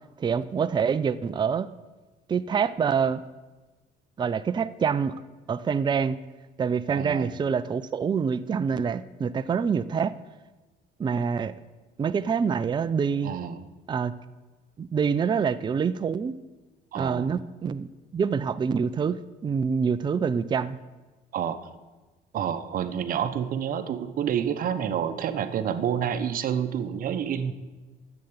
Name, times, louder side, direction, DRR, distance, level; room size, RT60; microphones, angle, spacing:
voice 1, 0.2-1.7 2.3-3.2 4.2-5.2 5.5-6.2 6.6-10.1 11.0-11.5 12.0-13.3 13.9-14.1 14.8-16.4 16.9-17.9 18.1-20.8, right 6 dB, 25° right, 12 dB, 0.5 m, -26 dB
voice 2, 6.9-7.3 13.2-13.7 16.9-17.3 21.3-21.6 22.3-27.5, right 8 dB, 55° right, 11 dB, 0.9 m, -28 dB
10.5 x 7.9 x 9.5 m, 1.2 s
cardioid pair, 110°, 17 cm